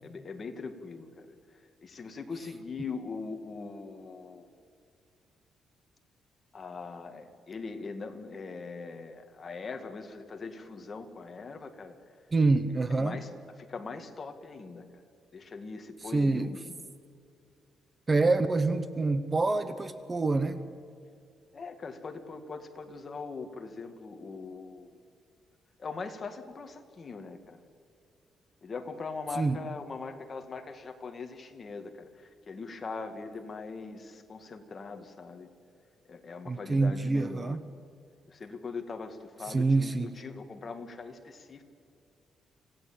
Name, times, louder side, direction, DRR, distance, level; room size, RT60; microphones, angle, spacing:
voice 1, 0.0-1.3 1.8-4.5 6.5-11.9 13.0-13.3 13.6-14.8 15.3-16.8 18.1-18.5 21.5-24.9 25.8-27.6 28.6-35.5 36.1-37.6 38.3-41.6, left 4 dB, 35° left, 6 dB, 2.1 m, -41 dB
voice 2, 12.3-13.2 16.0-16.5 18.1-20.6 29.3-29.6 36.5-37.6 39.4-40.2, right 3 dB, 20° right, 11 dB, 0.9 m, -26 dB
26.5 x 16.5 x 8.8 m, 2.4 s
cardioid pair, 145°, 0 cm